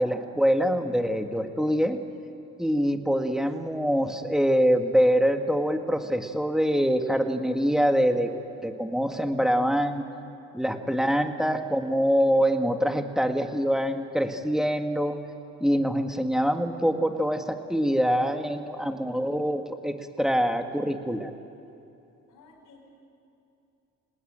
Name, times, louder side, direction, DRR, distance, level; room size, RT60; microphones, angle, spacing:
voice 1, 0.0-2.0 2.6-8.3 8.6-10.0 10.5-15.2 15.6-21.3, equal, ahead, 5 dB, 1.8 m, -24 dB
voice 2, 22.3-22.9, left 3 dB, 80° left, 2 dB, 4.9 m, -54 dB
26.5 x 19.5 x 8.9 m, 2.8 s
cardioid pair, 90°, 30 cm